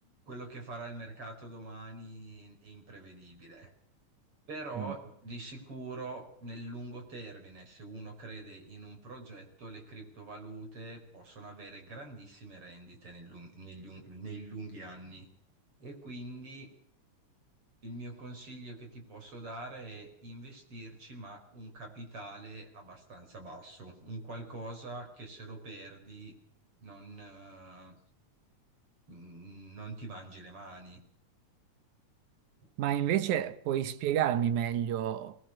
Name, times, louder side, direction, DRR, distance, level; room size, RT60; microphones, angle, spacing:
voice 1, 0.0-3.7 4.5-15.3 15.8-16.7 17.8-26.3 26.8-28.0 29.1-31.0 32.6-32.7, right 2 dB, 45° right, 5.6 m, -45 dB
voice 2, 32.8-35.4, right 10 dB, 80° right, 2.5 m, -29 dB
23.0 x 20.0 x 6.7 m
omnidirectional pair, 3.5 m